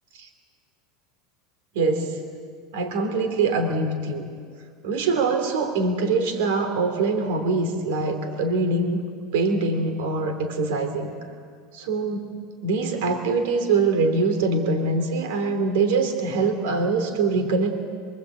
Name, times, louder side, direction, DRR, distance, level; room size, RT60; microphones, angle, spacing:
voice 1, 1.7-2.2 2.7-4.2 4.8-9.0 9.3-11.1 11.7-12.3 12.6-17.8, right 3 dB, 75° right, 5 dB, 2.9 m, -23 dB
25.5 x 24.0 x 8.5 m, 2.1 s
supercardioid pair, 150°, 0 cm